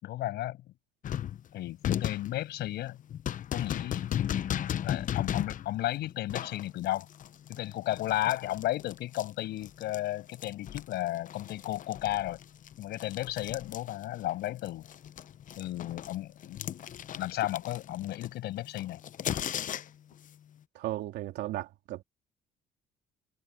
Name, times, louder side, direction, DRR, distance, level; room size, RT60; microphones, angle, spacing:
voice 1, 0.0-0.7 1.5-3.0 3.5-4.1 4.8-7.1 7.5-12.4 12.8-14.9 15.6-16.7 17.2-19.0, left 15 dB, 75° left, 6.1 m, -34 dB
sound 1, 1.0-10.0 10.3-14.3 14.6-20.1, left 10 dB, 50° left, 0.8 m, -36 dB
voice 2, 20.7-22.0, right 15 dB, 80° right, 3.4 m, -35 dB
cardioid pair, 100°, 17 cm